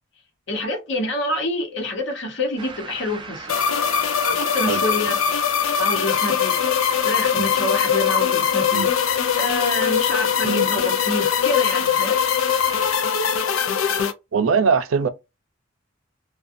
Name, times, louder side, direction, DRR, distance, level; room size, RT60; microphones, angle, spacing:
voice 1, 0.5-3.7 4.2-5.2 5.8-6.6 7.0-8.9 9.4-12.2, left 1 dB, 65° left, 0.9 m, -27 dB
sound 1, 2.6-13.0, right 4 dB, 25° right, 0.4 m, -37 dB
sound 2, 3.5-14.1, left 8 dB, 85° left, 0.4 m, -21 dB
voice 2, 10.4-10.7 14.3-15.1, right 5 dB, 90° right, 0.4 m, -21 dB
2.5 x 2.3 x 2.5 m
head